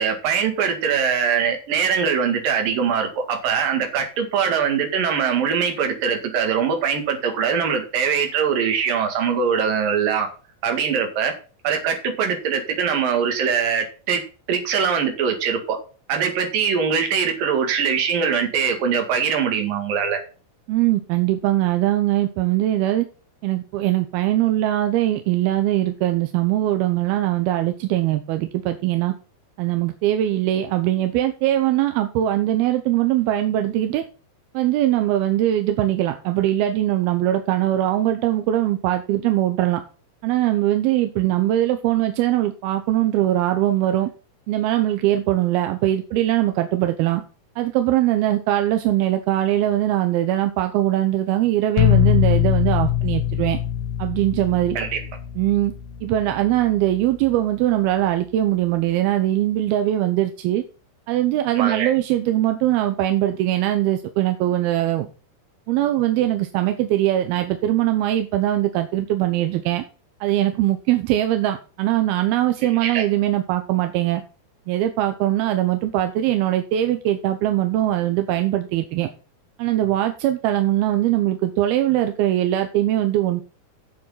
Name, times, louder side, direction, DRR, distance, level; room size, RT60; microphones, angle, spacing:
voice 1, 0.0-10.3 10.6-11.3 11.6-14.2 14.5-15.8 16.1-20.2 54.7-55.0 61.5-61.9 72.6-73.0, right 6 dB, 60° right, 5 dB, 3.4 m, -22 dB
voice 2, 20.7-23.1 23.4-29.1 29.6-34.0 34.5-39.8 40.2-44.1 44.5-47.2 47.6-53.6 54.0-54.8 55.4-55.7 56.0-60.6 61.1-65.1 65.7-69.8 70.2-74.2 74.7-79.1 79.6-83.4, right 13 dB, 75° right, 7 dB, 2.5 m, -21 dB
sound 1, 51.8-57.5, left 13 dB, 85° left, 3.0 m, -23 dB
8.7 x 7.6 x 5.6 m, 0.36 s
omnidirectional pair, 4.9 m